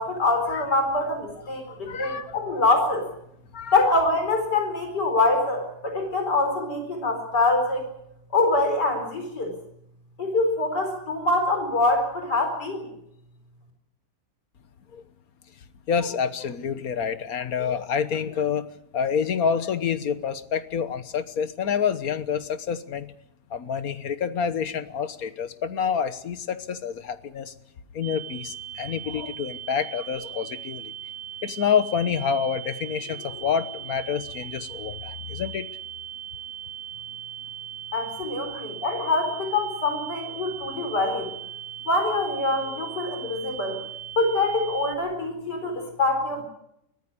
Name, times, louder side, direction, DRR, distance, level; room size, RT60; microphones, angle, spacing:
voice 1, 0.0-3.1 3.7-7.9 8.3-9.5 10.2-12.9 37.9-41.3 41.9-43.8 44.2-46.4, left 2 dB, 85° left, 5 dB, 5.1 m, -24 dB
voice 2, 1.7-2.6 3.5-3.8 14.9-15.0 15.9-18.7 18.9-23.1 23.5-27.5 27.9-30.9 31.4-35.7 38.5-38.7 40.8-40.9 43.2-43.3, left 7 dB, 60° left, 13 dB, 1.6 m, -28 dB
sound 1, 28.0-45.0, right 11 dB, 30° right, 2.4 m, -39 dB
23.0 x 15.0 x 9.8 m, 0.78 s
omnidirectional pair, 1.8 m